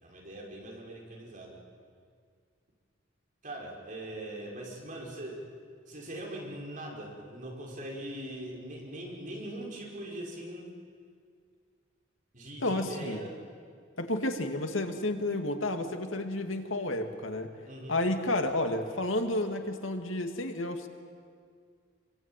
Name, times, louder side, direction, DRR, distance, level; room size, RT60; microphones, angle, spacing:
voice 1, 0.0-1.6 3.4-5.4 5.9-10.7 12.3-13.4 17.7-18.0, right 1 dB, 45° right, -1 dB, 5.7 m, -41 dB
voice 2, 12.6-13.2 14.0-17.5 17.9-20.9, left 1 dB, 85° left, 6 dB, 2.3 m, -31 dB
26.5 x 24.0 x 9.2 m, 2.1 s
head